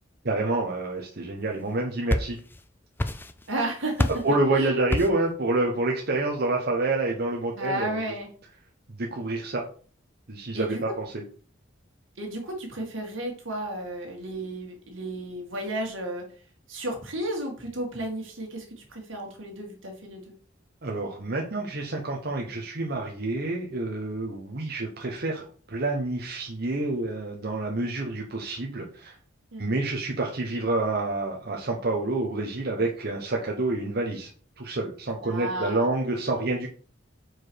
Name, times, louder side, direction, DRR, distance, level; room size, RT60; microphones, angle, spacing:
voice 1, 0.2-2.4 4.2-8.0 8.9-9.7 10.3-11.2 20.8-29.1 29.6-34.3 34.6-36.7, right 2 dB, 55° right, 0 dB, 1.0 m, -28 dB
sound 1, 1.7-2.6 3.0-3.6 4.0-4.3 4.9-5.3, left 1 dB, 10° left, 0.3 m, -28 dB
voice 2, 3.5-4.7 7.6-8.3 10.5-10.9 12.2-16.3 16.7-20.3 29.5-29.8 35.3-35.8, right 1 dB, 85° right, 1 dB, 2.0 m, -33 dB
4.8 x 4.6 x 4.6 m, 0.42 s
head